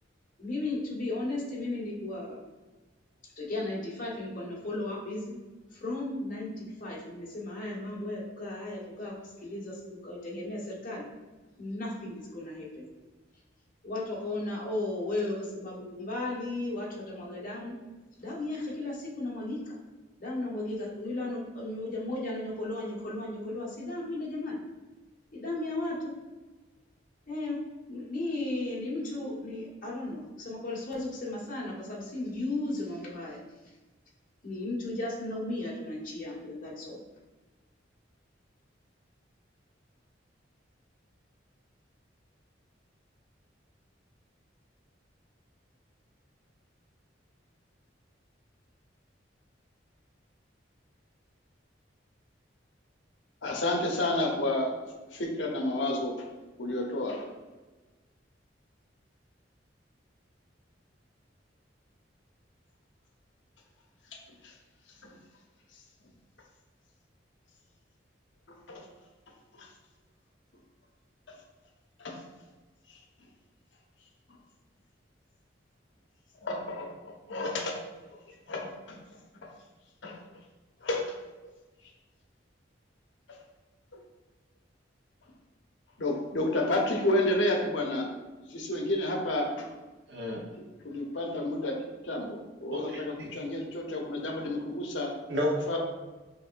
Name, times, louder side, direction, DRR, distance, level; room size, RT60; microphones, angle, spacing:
voice 1, 0.4-2.4 3.4-5.4 5.7-11.1 11.6-12.8 13.8-17.7 18.2-19.8 20.2-24.6 25.3-26.1 27.3-27.6 27.9-33.4 34.4-37.0, left 2 dB, 45° left, -5 dB, 1.4 m, -35 dB
voice 2, 53.4-56.3 56.6-57.3 64.1-64.6 64.9-65.1 65.7-65.8 68.5-68.9 69.5-69.7 71.3-71.4 72.0-72.2 72.9-73.3 76.3-77.8 78.1-79.0 79.4-79.5 80.0-80.2 80.8-81.2 83.3-83.4 83.9-84.0 85.2-85.3 86.0-88.1 88.5-89.7 90.8-91.8 92.0-95.2 95.7-95.8, left 1 dB, 80° left, 1 dB, 0.8 m, -31 dB
voice 3, 90.1-90.4 92.7-93.3 95.3-95.8, left 1 dB, 65° right, -1 dB, 1.0 m, -31 dB
6.5 x 3.1 x 2.5 m, 1.2 s
head